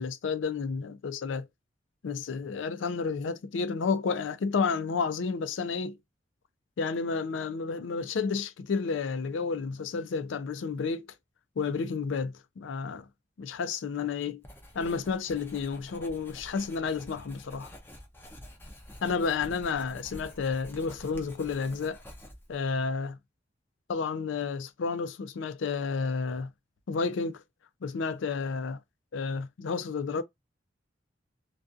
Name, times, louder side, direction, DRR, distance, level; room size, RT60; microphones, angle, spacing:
voice 1, 0.0-1.5 2.0-6.0 6.8-11.1 11.6-13.0 13.4-14.4 14.7-17.7 19.0-22.0 22.5-23.2 23.9-26.5 26.9-27.4 27.8-28.8 29.1-30.2, left 5 dB, 75° left, 0.4 m, -31 dB
Writing, 14.4-22.6, equal, 10° left, 0.5 m, -48 dB
2.3 x 2.3 x 2.5 m
head